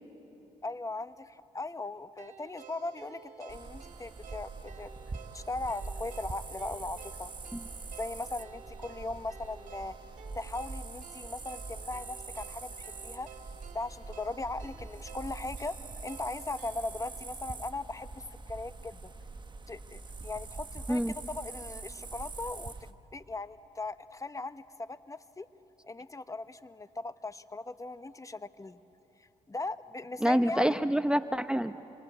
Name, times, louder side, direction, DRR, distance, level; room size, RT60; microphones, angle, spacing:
voice 1, 0.6-4.9 5.3-7.3 8.0-10.0 10.3-13.3 13.7-19.0 19.7-22.7 23.1-25.5 25.8-28.8 29.2-30.8, left 2 dB, 20° left, 13 dB, 0.9 m, -39 dB
sound 1, 2.2-18.3, right 7 dB, 65° right, 2.5 m, -53 dB
sound 2, 3.5-22.9, right 3 dB, 35° right, 1.2 m, -44 dB
voice 2, 30.2-31.8, equal, 5° right, 11 dB, 0.7 m, -27 dB
28.0 x 24.5 x 8.1 m, 3.0 s
supercardioid pair, 60°, 14 cm